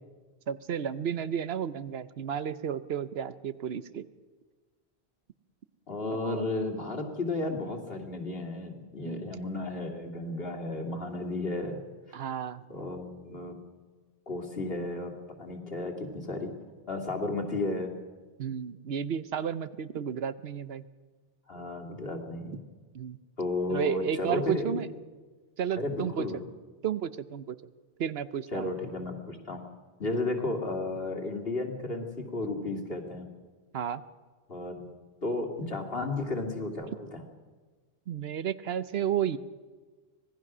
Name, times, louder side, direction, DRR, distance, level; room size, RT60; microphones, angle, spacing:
voice 1, 0.5-4.1 6.1-6.4 9.0-9.3 12.1-12.6 18.4-20.9 22.9-23.2 23.7-24.9 25.6-26.3 26.8-27.6 28.0-28.7 33.7-34.0 38.1-39.4, right 8 dB, 75° right, 14 dB, 1.0 m, -32 dB
voice 2, 5.9-11.8 12.1-12.2 12.7-13.6 14.3-16.5 16.9-17.9 21.5-22.6 23.4-24.8 25.8-26.5 28.5-29.6 30.0-33.3 34.5-34.9 35.2-37.2, left 2 dB, 65° left, 2 dB, 2.7 m, -33 dB
25.5 x 17.5 x 6.1 m, 1.4 s
omnidirectional pair, 1.1 m